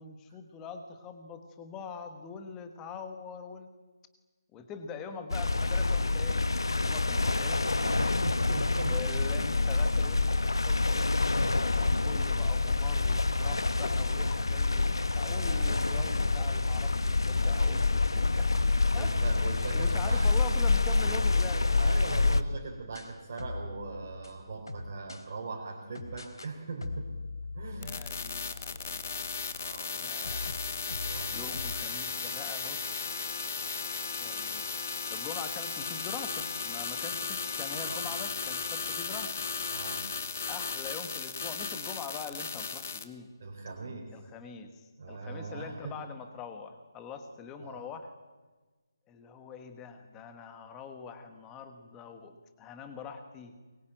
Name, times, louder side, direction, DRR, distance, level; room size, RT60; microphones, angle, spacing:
voice 1, 0.0-3.7 4.5-6.5 6.8-7.6 8.8-11.2 11.5-18.6 18.9-19.1 19.7-21.7 27.8-29.5 29.9-30.6 31.3-33.0 34.2-34.6 35.1-39.4 40.5-43.3 44.1-48.1 49.1-53.5, left 5 dB, 5° left, 7 dB, 1.2 m, -43 dB
sound 1, 5.3-22.4, left 3 dB, 85° left, 1.5 m, -27 dB
voice 2, 7.7-9.0 15.2-16.3 18.9-20.3 21.8-27.1 27.5-28.0 29.5-30.3 30.9-31.5 37.7-38.0 39.7-40.0 43.4-44.1 45.0-46.0 47.6-47.9, right 4 dB, 25° right, -3 dB, 4.1 m, -41 dB
sound 2, 22.6-25.2 25.9-26.5 26.8-29.8 30.2-31.9, left 3 dB, 65° left, 3.4 m, -42 dB
sound 3, 27.8-43.0, left 5 dB, 30° left, 1.1 m, -36 dB
24.5 x 22.0 x 9.1 m, 1.3 s
hypercardioid pair, 180°, 2 cm